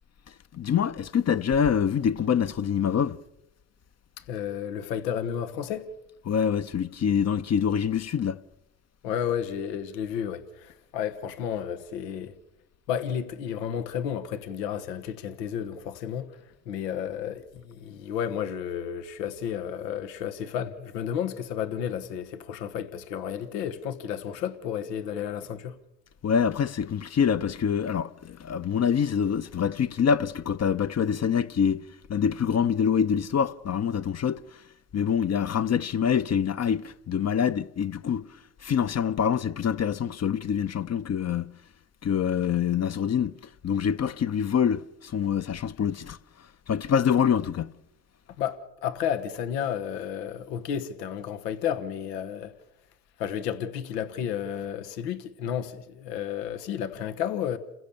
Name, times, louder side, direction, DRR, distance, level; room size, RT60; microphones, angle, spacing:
voice 1, 0.5-3.2 6.3-8.4 26.2-34.4 34.9-38.3 38.6-41.5 42.0-43.4 43.6-46.2 46.7-47.7, left 7 dB, 35° left, 0.8 m, -25 dB
voice 2, 4.3-5.9 9.0-12.4 12.9-16.4 16.6-25.8 48.4-52.5 53.2-57.6, left 9 dB, 85° left, 1.3 m, -32 dB
29.0 x 16.0 x 7.0 m
hypercardioid pair, 70°, 48 cm